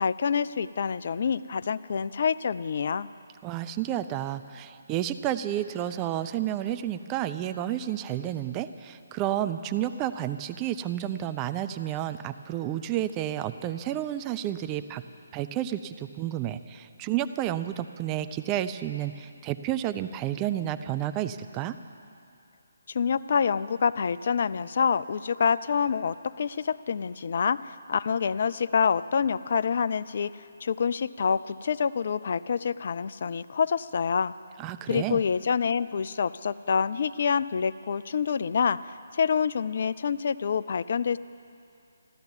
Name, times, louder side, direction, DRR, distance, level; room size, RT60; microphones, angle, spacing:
voice 1, 0.0-3.1 22.9-34.3 34.9-38.8 39.1-41.2, left 6 dB, 50° left, 15 dB, 0.4 m, -27 dB
voice 2, 3.4-15.0 15.3-21.7 34.6-35.2, right 12 dB, 20° right, 11 dB, 0.4 m, -31 dB
14.5 x 12.0 x 7.3 m, 2.6 s
figure-of-eight pair, 145°, 0 cm